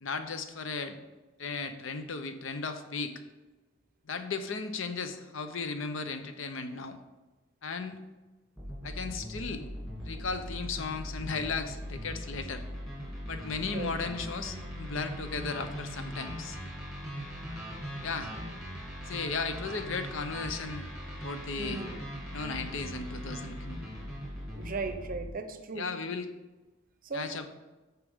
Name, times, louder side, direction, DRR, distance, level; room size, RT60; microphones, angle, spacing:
voice 1, 0.0-1.0 1.4-3.2 4.1-7.0 7.6-8.0 8.8-9.6 10.0-12.6 13.3-16.6 18.0-18.3 19.1-20.9 21.2-21.8 22.3-23.8 25.7-26.3 27.1-27.5, left 4 dB, 65° left, 8 dB, 0.7 m, -36 dB
sound 1, 8.6-25.3, equal, ahead, 2.3 m, -40 dB
voice 2, 21.5-21.9 24.5-25.9 27.0-27.3, right 4 dB, 40° right, 8 dB, 0.6 m, -37 dB
8.5 x 5.9 x 3.5 m, 1.2 s
head